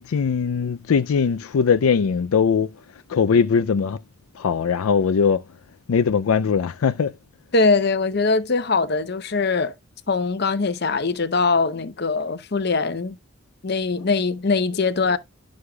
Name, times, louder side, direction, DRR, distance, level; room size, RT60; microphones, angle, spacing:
voice 1, 0.0-2.7 3.1-4.0 4.4-5.4 5.9-7.1, left 6 dB, 85° left, 0.4 m, -20 dB
voice 2, 7.5-9.7 10.1-13.2 13.6-15.2, left 4 dB, 50° left, 0.7 m, -22 dB
11.5 x 6.3 x 2.3 m
head